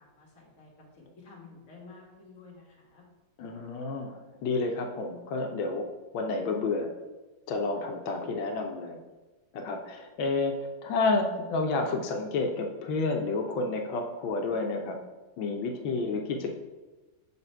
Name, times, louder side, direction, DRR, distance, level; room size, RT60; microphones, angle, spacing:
voice 1, 0.1-3.0, left 4 dB, 45° left, -2 dB, 1.8 m, -51 dB
voice 2, 3.4-5.9 6.1-6.9 7.5-9.0 9.5-15.0 15.4-16.5, left 3 dB, 90° left, 3 dB, 1.5 m, -30 dB
6.5 x 4.1 x 4.4 m, 1.2 s
omnidirectional pair, 2.1 m